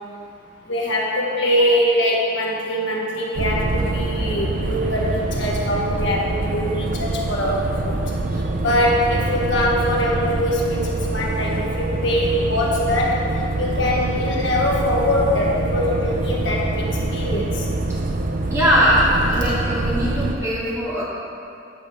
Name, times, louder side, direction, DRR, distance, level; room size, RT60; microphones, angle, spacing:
voice 1, 0.7-8.0 8.6-13.2 13.6-17.6, left 1 dB, 65° left, -3 dB, 1.4 m, -22 dB
sound 1, 3.4-20.4, right 2 dB, 45° right, 0.5 m, -25 dB
voice 2, 8.3-8.7 18.5-21.0, equal, 15° right, -8 dB, 1.8 m, -20 dB
8.4 x 5.1 x 5.5 m, 2.6 s
head